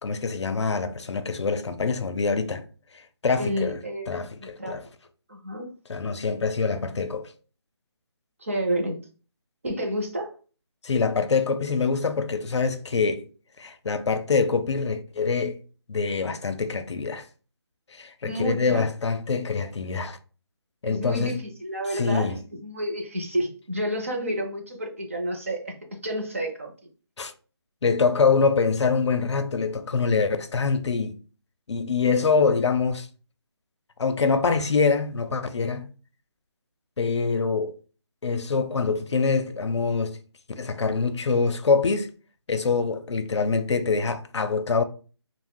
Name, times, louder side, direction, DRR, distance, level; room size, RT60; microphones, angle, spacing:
voice 1, 0.0-2.6 3.2-3.8 4.1-4.8 5.9-7.3 10.8-13.3 13.6-15.6 15.9-17.3 17.9-20.2 20.8-21.4 21.9-22.4 27.2-27.3 27.8-31.2 31.7-33.1 34.0-35.9 37.0-37.7 38.2-40.2 40.6-42.1 42.5-44.8, left 4 dB, 85° left, 0.5 m, -24 dB
voice 2, 3.4-4.8 5.3-5.7 8.4-9.0 9.6-10.3 18.2-18.8 20.8-22.4 22.6-25.8 26.0-26.7, equal, 30° right, 0.5 m, -30 dB
2.5 x 2.0 x 3.5 m
figure-of-eight pair, 175°, 14 cm